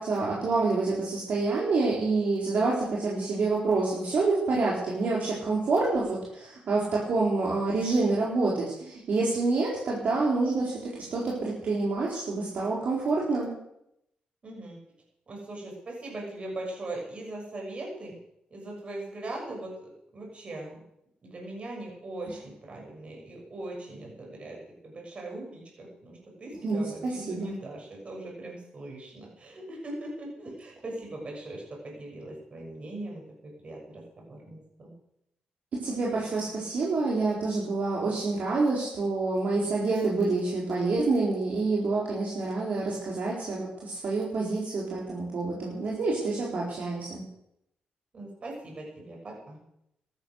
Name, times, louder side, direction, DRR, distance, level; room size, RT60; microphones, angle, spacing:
voice 1, 0.0-13.5 26.6-27.6 35.8-47.2, right 3 dB, 60° right, -4 dB, 4.1 m, -27 dB
voice 2, 14.4-14.8 15.3-18.2 18.5-20.8 21.2-24.6 24.8-34.9 48.1-49.6, right 2 dB, 40° right, 0 dB, 6.8 m, -40 dB
14.0 x 13.0 x 6.5 m, 0.79 s
cardioid pair, 110°, 3 cm